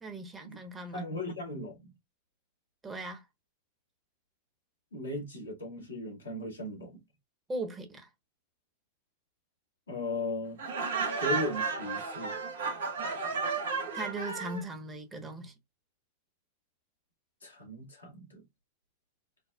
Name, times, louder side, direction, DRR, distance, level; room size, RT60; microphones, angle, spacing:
voice 1, 0.0-1.0 2.8-3.2 7.5-8.1 13.9-15.5, right 2 dB, 20° right, 0.9 m, -38 dB
voice 2, 0.9-1.9 4.9-7.0 9.9-10.6 11.0-12.3 17.4-18.4, left 1 dB, 85° left, 1.5 m, -37 dB
Laughter, 10.6-14.6, right 4 dB, 70° right, 0.9 m, -33 dB
4.0 x 2.0 x 2.2 m
figure-of-eight pair, 95°, 0 cm